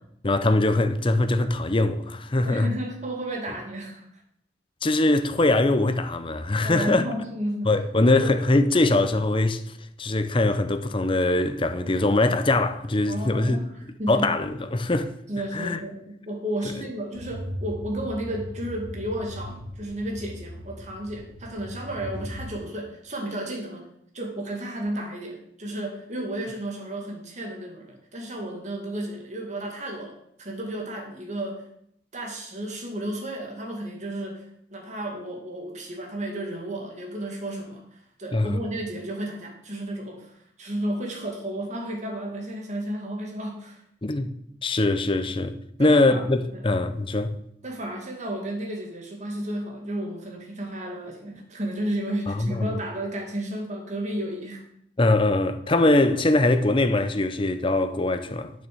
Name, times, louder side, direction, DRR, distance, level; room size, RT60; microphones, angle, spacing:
voice 1, 0.2-2.7 4.8-7.1 7.6-9.6 10.0-13.6 14.1-15.1 15.5-15.8 38.3-38.6 44.0-44.3 44.6-47.3 52.3-52.8 55.0-58.5, left 2 dB, 30° left, 0.7 m, -22 dB
voice 2, 2.4-4.1 6.6-8.4 13.1-14.3 15.3-23.9 24.1-31.6 32.1-34.5 34.7-43.8 45.8-46.3 46.5-46.8 47.6-54.6, right 1 dB, 40° right, 2.3 m, -33 dB
sound 1, 17.1-22.5, equal, 75° right, 2.8 m, -38 dB
8.8 x 7.1 x 6.9 m
head